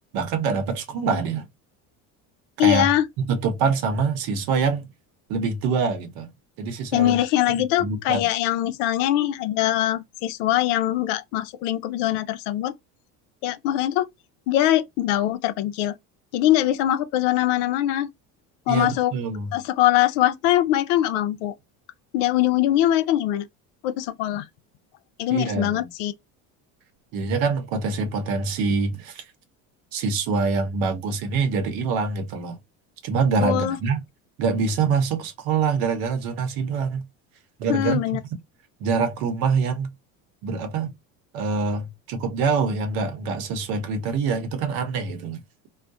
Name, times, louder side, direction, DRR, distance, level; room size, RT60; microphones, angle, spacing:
voice 1, 0.1-1.5 2.6-4.9 5.3-6.3 6.6-7.2 7.5-8.3 18.7-19.5 25.3-25.9 27.1-29.2 29.9-32.6 33.0-34.0 34.4-37.0 37.6-38.0 38.8-39.9 40.4-40.9 41.3-45.4, right 5 dB, 75° right, 0.8 m, -25 dB
voice 2, 2.6-3.1 6.9-12.7 13.4-14.1 14.5-15.9 16.3-18.1 18.7-19.1 19.5-21.5 22.1-23.5 23.8-24.5 25.2-26.1 33.4-33.8 37.7-38.2, left 13 dB, 90° left, 0.5 m, -22 dB
2.3 x 2.1 x 2.6 m
cardioid pair, 125°, 36 cm